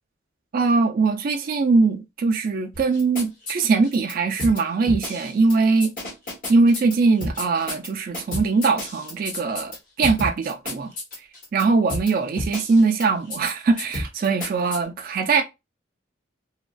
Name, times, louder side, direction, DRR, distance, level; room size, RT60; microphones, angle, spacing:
voice 1, 0.5-5.9 6.5-10.9 11.5-15.4, right 4 dB, 45° right, 0.3 m, -21 dB
sound 1, 2.7-4.1 4.4-4.6 4.9-5.5 5.8-6.9 7.2-7.9 8.1-9.8 10.0-11.6 11.9-12.1 12.4-13.0 13.3-13.5 13.8-14.8, left 1 dB, 45° left, 1.1 m, -31 dB
2.8 x 2.5 x 2.2 m
head